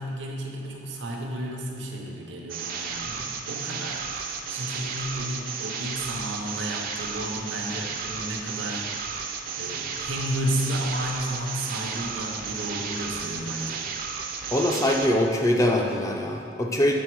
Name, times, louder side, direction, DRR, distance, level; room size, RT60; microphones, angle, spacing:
voice 1, 0.0-13.8, right 1 dB, 85° right, -1 dB, 0.8 m, -32 dB
sound 1, 2.5-15.1, right 6 dB, 50° right, 0.5 m, -33 dB
voice 2, 14.5-17.0, left 1 dB, 15° left, 1 dB, 0.4 m, -23 dB
7.1 x 4.3 x 4.6 m, 2.3 s
head